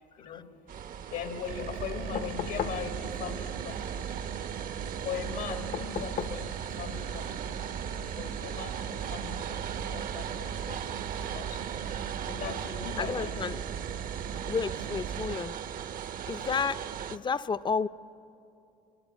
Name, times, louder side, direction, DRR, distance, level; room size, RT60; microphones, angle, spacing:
voice 1, 0.2-0.5 1.1-4.1 5.0-7.6 7.9-13.3, left 7 dB, 85° left, 5 dB, 2.1 m, -40 dB
sound 1, 0.7-17.2, right 8 dB, 55° right, 0.7 m, -39 dB
sound 2, 1.5-15.4, right 8 dB, 70° right, 1.2 m, -38 dB
sound 3, 2.1-2.9 5.7-6.4 8.0-8.1, left 9 dB, 60° left, 0.7 m, -35 dB
voice 2, 13.0-13.6 14.5-15.6 16.3-16.9 17.1-17.9, left 5 dB, 25° left, 14 dB, 0.5 m, -31 dB
24.0 x 23.5 x 8.7 m, 2.8 s
cardioid pair, 110°, 17 cm